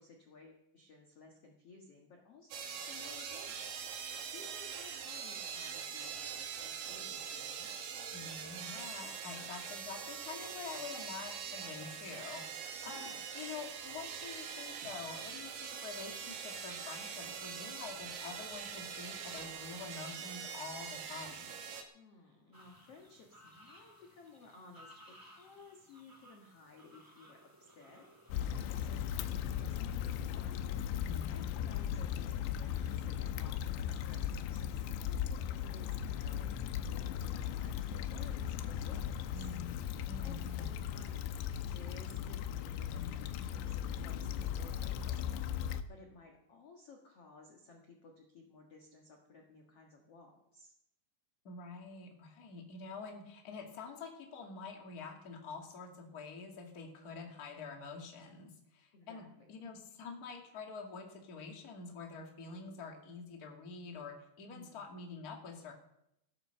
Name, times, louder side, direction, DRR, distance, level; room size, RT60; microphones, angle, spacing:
voice 1, 0.0-2.5 2.8-3.8 4.3-7.7 12.9-13.2 21.9-28.1 28.4-30.6 31.0-39.5 40.2-43.8 44.0-50.7 58.9-59.6 64.5-64.9, left 4 dB, 55° left, 1 dB, 1.7 m, -57 dB
sound 1, 2.5-21.8, right 7 dB, 60° right, 2.7 m, -43 dB
voice 2, 8.1-21.5 31.0-31.5 39.3-39.8 40.0-40.7 51.4-65.7, left 4 dB, 35° left, 1 dB, 1.7 m, -47 dB
sound 2, 22.5-29.6, equal, 15° right, 0.6 m, -60 dB
Stream / Traffic noise roadway noise / Trickle dribble, 28.3-45.8, left 9 dB, 85° left, 3.0 m, -37 dB
16.5 x 9.9 x 6.6 m, 0.80 s
omnidirectional pair, 5.0 m